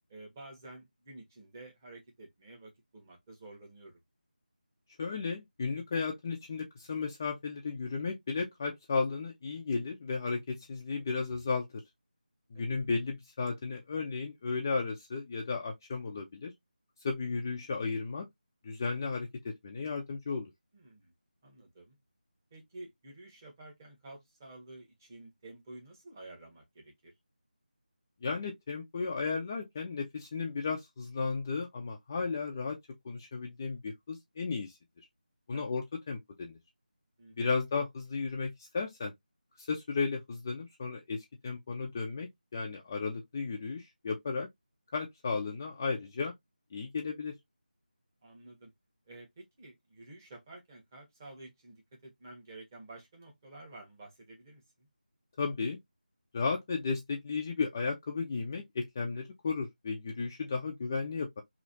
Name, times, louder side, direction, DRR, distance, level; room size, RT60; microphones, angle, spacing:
voice 1, 0.1-4.0 12.5-12.7 20.7-21.1 21.4-22.0 22.5-27.1 35.5-35.6 37.2-37.4 48.2-48.7 49.1-54.9, right 2 dB, 20° right, 1.1 m, -51 dB
voice 2, 5.0-11.7 12.5-16.5 17.0-18.3 18.6-19.3 19.6-20.5 28.2-32.8 33.0-34.8 35.5-36.6 37.4-39.1 39.6-44.5 44.9-46.3 46.7-47.3 55.4-55.8 56.3-61.4, left 4 dB, 20° left, 0.4 m, -34 dB
3.1 x 2.7 x 2.6 m
figure-of-eight pair, 165°, 5 cm